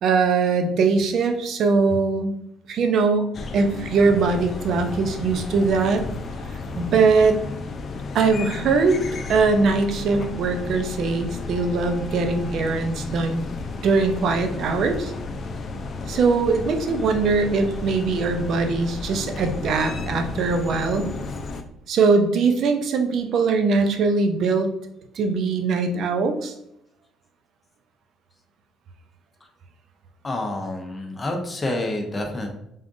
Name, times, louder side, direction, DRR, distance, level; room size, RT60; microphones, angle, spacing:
voice 1, 0.0-2.3 2.7-3.3 3.5-6.1 6.8-7.4 8.1-9.0 9.3-13.5 13.8-15.1 16.1-21.1 21.9-24.7 25.1-26.5, right 4 dB, 65° right, 6 dB, 0.6 m, -21 dB
sound 1, 3.3-21.6, left 3 dB, 50° left, 0.5 m, -33 dB
voice 2, 30.2-32.6, left 1 dB, 25° left, 2 dB, 0.9 m, -28 dB
3.6 x 3.5 x 2.6 m, 0.78 s
supercardioid pair, 65°, 0 cm